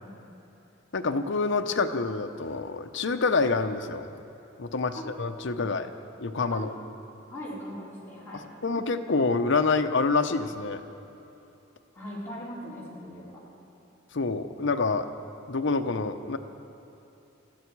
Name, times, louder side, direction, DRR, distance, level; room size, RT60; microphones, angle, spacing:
voice 1, 0.9-4.2 4.6-5.9 6.2-6.7 8.3-10.8 14.1-15.1 15.5-16.4, left 4 dB, 65° left, 7 dB, 0.8 m, -27 dB
voice 2, 7.3-8.8 11.9-13.4, equal, 10° left, -9 dB, 4.5 m, -40 dB
21.0 x 14.0 x 4.7 m, 3.0 s
head